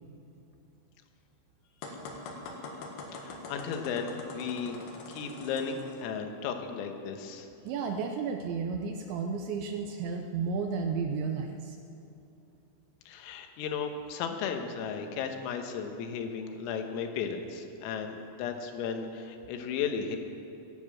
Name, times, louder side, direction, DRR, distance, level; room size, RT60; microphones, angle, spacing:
sound 1, 1.8-6.0, left 3 dB, 60° left, 3.1 m, -43 dB
voice 1, 3.1-4.8 5.1-7.5 13.1-20.2, left 6 dB, 90° left, 5 dB, 3.9 m, -35 dB
voice 2, 7.7-11.8, right 5 dB, 80° right, 4 dB, 2.7 m, -32 dB
16.5 x 10.5 x 7.6 m, 2.8 s
omnidirectional pair, 5.9 m